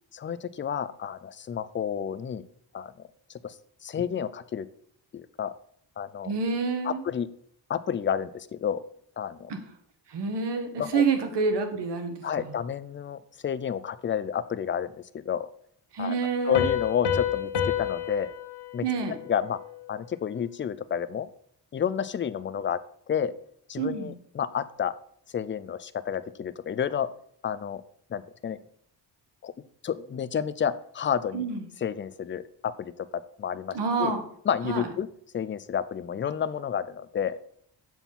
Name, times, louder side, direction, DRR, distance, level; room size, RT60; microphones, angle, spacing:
voice 1, 0.1-2.4 2.7-2.9 3.4-3.6 3.8-4.7 5.1-5.5 6.0-6.3 6.8-7.3 7.7-8.8 9.2-9.5 10.8-11.0 12.2-15.5 16.0-16.2 16.4-17.5 17.8-18.3 18.7-18.8 19.3-19.6 19.9-21.3 21.7-22.8 23.1-23.3 23.7-25.0 25.3-27.1 27.4-27.8 28.1-28.6 29.4-29.5 29.8-31.4 31.8-34.1 34.5-35.1 35.3-37.4, left 8 dB, 30° left, 14 dB, 0.4 m, -30 dB
voice 2, 6.2-7.0 9.5-9.6 10.1-12.5 15.9-16.7 18.8-19.1 23.8-24.1 31.3-31.6 33.7-34.2 34.6-34.9, right 4 dB, 70° right, 6 dB, 1.4 m, -28 dB
Piano, 16.5-20.0, left 9 dB, 70° left, 1.2 m, -30 dB
7.1 x 4.5 x 5.4 m, 0.64 s
cardioid pair, 90°, 43 cm